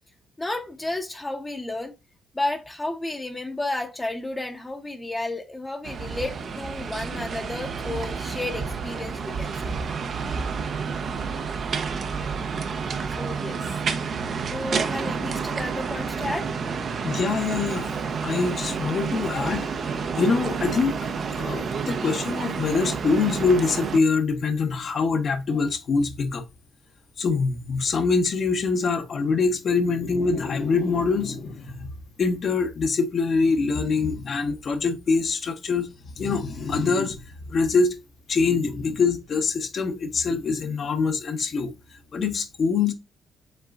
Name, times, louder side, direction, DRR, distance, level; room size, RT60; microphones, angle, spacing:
voice 1, 0.4-1.9 2.3-9.8 13.2-13.7 14.4-16.5, left 2 dB, 15° left, 0.8 m, -32 dB
sound 1, 5.8-24.0, right 5 dB, 55° right, 0.7 m, -29 dB
voice 2, 17.0-17.9 18.2-21.1 21.4-26.4 27.2-31.9 32.2-35.9 36.2-37.2 37.5-37.9 38.3-41.7 42.1-42.9, left 4 dB, 50° left, 0.9 m, -24 dB
5.5 x 3.7 x 2.4 m
cardioid pair, 90°, 0 cm